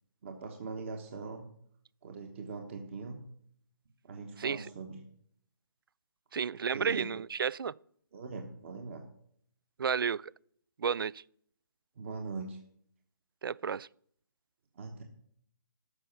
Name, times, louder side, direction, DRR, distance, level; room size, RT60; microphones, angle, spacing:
voice 1, 0.2-1.5 2.0-3.2 4.0-5.0 6.7-7.1 8.1-9.0 12.0-12.6 14.7-15.0, right 4 dB, 35° right, 1.2 m, -41 dB
voice 2, 6.3-7.7 9.8-10.3 10.8-11.2 13.4-13.9, right 6 dB, 75° right, 0.4 m, -32 dB
13.0 x 5.6 x 7.2 m
hypercardioid pair, 165°, 12 cm